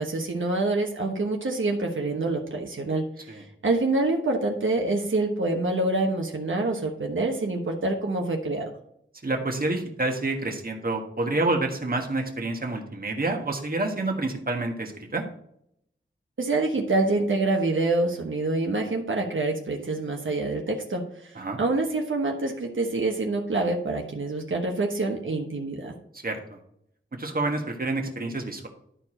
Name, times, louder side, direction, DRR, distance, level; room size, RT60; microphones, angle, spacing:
voice 1, 0.0-8.8 16.4-25.9, right 2 dB, 80° right, 1 dB, 1.2 m, -26 dB
voice 2, 9.2-15.2 21.4-21.6 26.2-26.6 27.1-28.7, right 2 dB, 45° right, 2 dB, 1.5 m, -28 dB
11.5 x 4.6 x 4.4 m, 0.71 s
wide cardioid pair, 75°, 20 cm